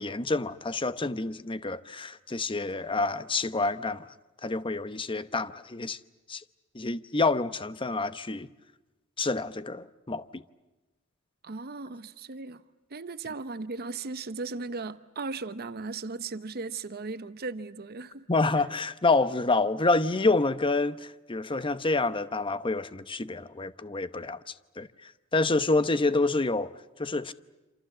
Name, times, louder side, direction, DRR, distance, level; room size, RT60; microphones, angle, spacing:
voice 1, 0.0-4.1 4.4-6.0 6.3-6.4 6.7-8.5 9.2-10.4 18.3-24.4 24.8-26.7 27.0-27.3, left 3 dB, 25° left, 0.8 m, -28 dB
voice 2, 11.4-12.6 12.9-18.3, right 3 dB, 45° right, 0.8 m, -37 dB
28.0 x 27.5 x 7.3 m
head